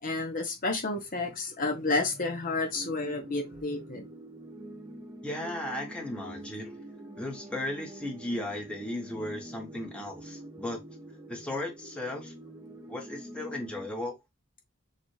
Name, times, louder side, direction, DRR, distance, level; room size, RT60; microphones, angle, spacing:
voice 1, 0.0-4.1, left 3 dB, 40° left, 0.9 m, -31 dB
sound 1, 2.7-13.9, right 1 dB, 15° right, 0.7 m, -46 dB
voice 2, 5.2-6.8 7.2-10.8 11.3-12.3 12.9-14.1, left 1 dB, 5° left, 1.1 m, -36 dB
6.6 x 2.4 x 3.2 m
head